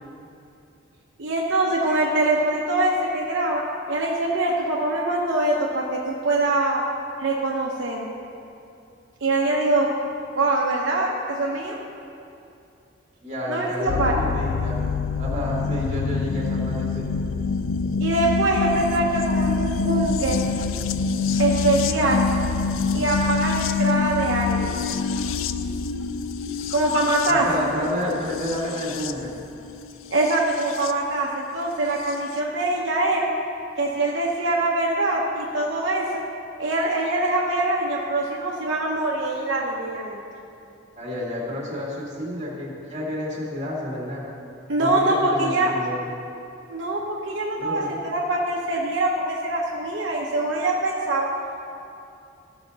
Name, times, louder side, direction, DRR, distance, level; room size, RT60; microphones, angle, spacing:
voice 1, 1.2-3.6 3.9-6.8 7.2-8.1 9.2-9.9 10.4-11.8 13.5-14.1 18.0-20.4 21.4-22.2 22.9-24.7 26.7-27.4 30.1-33.3 33.8-36.1 36.6-40.2 44.7-45.7 46.7-51.3, right 2 dB, 70° right, -3 dB, 0.9 m, -23 dB
voice 2, 13.2-14.8 15.2-17.1 27.2-29.4 41.0-44.2 44.8-46.0 47.6-48.0, left 1 dB, 35° right, -4 dB, 1.9 m, -30 dB
sound 1, 13.9-30.9 32.1-32.2, left 5 dB, 80° left, 0.4 m, -26 dB
14.5 x 5.9 x 4.0 m, 2.6 s
head